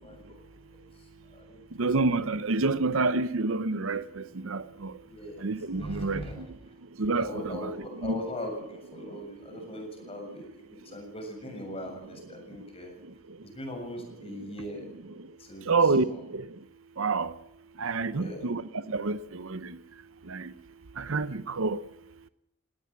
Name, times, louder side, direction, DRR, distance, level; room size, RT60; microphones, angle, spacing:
voice 1, 0.0-1.9 2.2-2.3 4.7-6.8 7.2-13.0 13.4-14.8 15.4-16.2 18.1-18.6, equal, 30° left, 7.1 m, -41 dB
voice 2, 1.8-4.9 5.4-6.2 7.0-7.7 8.0-8.2 15.7-16.4 17.0-17.3 17.8-18.6 18.9-19.8 20.3-20.5 21.0-21.8, right 3 dB, 70° right, 0.8 m, -28 dB
21.0 x 18.0 x 7.4 m
head